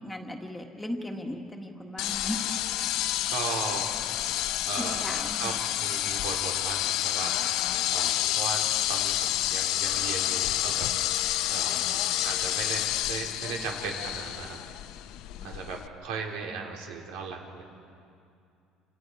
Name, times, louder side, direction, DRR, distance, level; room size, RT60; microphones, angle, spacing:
voice 1, 0.0-2.6 4.8-5.5 11.1-11.2 15.4-15.7, left 1 dB, 5° left, 2 dB, 1.7 m, -37 dB
sound 1, 2.0-15.9, left 13 dB, 65° left, 0.8 m, -29 dB
voice 2, 3.3-3.9 4.6-10.9 11.5-14.6 15.4-17.6, right 5 dB, 90° right, 0 dB, 4.2 m, -37 dB
29.0 x 28.5 x 4.9 m, 2.4 s
cardioid pair, 155°, 0 cm